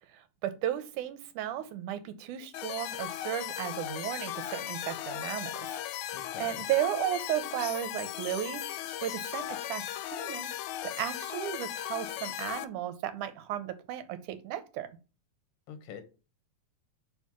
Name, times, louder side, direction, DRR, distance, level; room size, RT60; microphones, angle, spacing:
voice 1, 0.1-5.8 6.1-8.6 9.0-10.5 10.8-14.9, right 12 dB, 80° right, 2.3 m, -34 dB
sound 1, 2.5-12.7, left 12 dB, 80° left, 2.0 m, -37 dB
voice 2, 6.1-6.6 15.7-16.0, left 7 dB, 60° left, 1.9 m, -45 dB
5.6 x 4.9 x 6.1 m
omnidirectional pair, 3.5 m